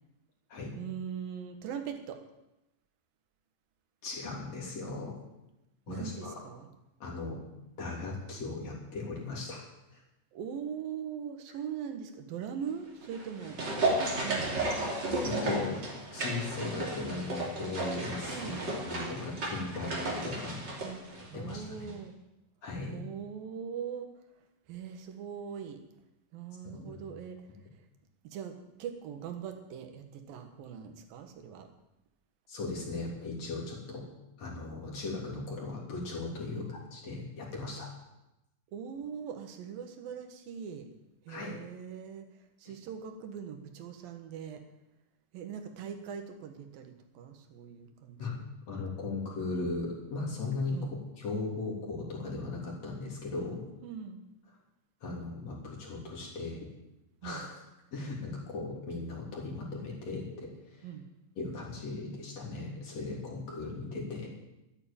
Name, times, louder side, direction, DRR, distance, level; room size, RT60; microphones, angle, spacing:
voice 1, 0.8-2.2 5.9-6.7 10.3-13.6 14.2-14.7 18.3-18.6 20.8-22.1 22.9-24.1 24.7-25.8 26.3-27.4 28.2-31.7 36.5-36.7 38.7-40.9 41.3-42.3 42.6-44.6 45.3-48.4 50.7-50.9 53.8-54.2 57.2-57.5 60.8-61.1, right 7 dB, 75° right, 6 dB, 3.1 m, -41 dB
voice 2, 4.0-5.2 5.9-6.3 7.0-7.4 7.8-9.6 9.9-10.0 15.2-15.9 16.1-18.5 18.8-20.7 21.3-21.9 22.6-23.0 26.6-27.0 32.5-34.1 34.4-37.9 41.3-41.6 42.7-42.8 48.2-48.4 48.7-53.6 55.0-56.7 57.2-57.6 57.9-60.9 61.4-64.3, left 3 dB, 50° left, -3 dB, 4.3 m, -37 dB
sound 1, 13.0-21.6 21.9-22.0, right 2 dB, 30° right, 3.1 m, -33 dB
13.0 x 9.8 x 8.9 m, 0.94 s
omnidirectional pair, 4.1 m